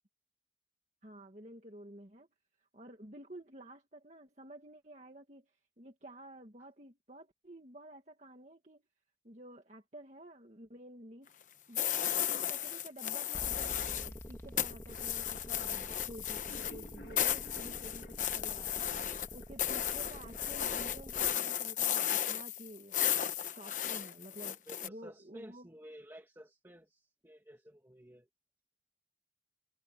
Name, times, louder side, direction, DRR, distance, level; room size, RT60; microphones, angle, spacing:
voice 1, 1.0-2.3 2.6-8.8 9.2-11.3 11.7-23.0 23.2-25.7, right 1 dB, 40° right, 1.8 m, -51 dB
sound 1, 11.7-14.2 14.6-24.9, left 10 dB, 45° left, 1.0 m, -34 dB
sound 2, 13.3-21.4, equal, 15° left, 1.8 m, -48 dB
sound 3, 16.5-19.5 19.9-20.0 20.4-20.5 20.8-20.9, left 1 dB, 65° left, 2.1 m, -53 dB
voice 2, 24.4-28.3, equal, 15° right, 1.7 m, -53 dB
head